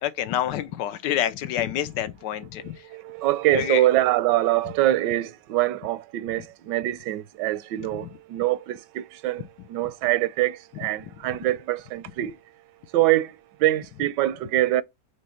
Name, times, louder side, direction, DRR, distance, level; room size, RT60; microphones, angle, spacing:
voice 1, 0.0-2.7 3.5-3.8 8.0-8.1, left 11 dB, 85° left, 1.3 m, -27 dB
voice 2, 2.6-12.4 12.9-13.3 13.6-14.8, right 15 dB, 85° right, 1.2 m, -24 dB
5.2 x 3.2 x 5.6 m
omnidirectional pair, 1.8 m